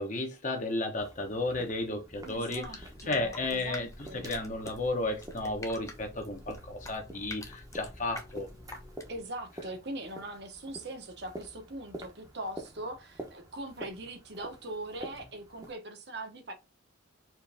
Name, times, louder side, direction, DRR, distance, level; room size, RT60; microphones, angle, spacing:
voice 1, 0.0-8.5, left 2 dB, 40° left, 1.1 m, -33 dB
sound 1, 1.0-15.7, right 1 dB, 15° right, 0.9 m, -49 dB
sound 2, 2.1-9.3, left 2 dB, 15° left, 0.7 m, -47 dB
voice 2, 2.2-3.8 4.1-4.3 9.1-16.5, right 1 dB, 55° right, 1.1 m, -41 dB
4.5 x 3.2 x 3.5 m
head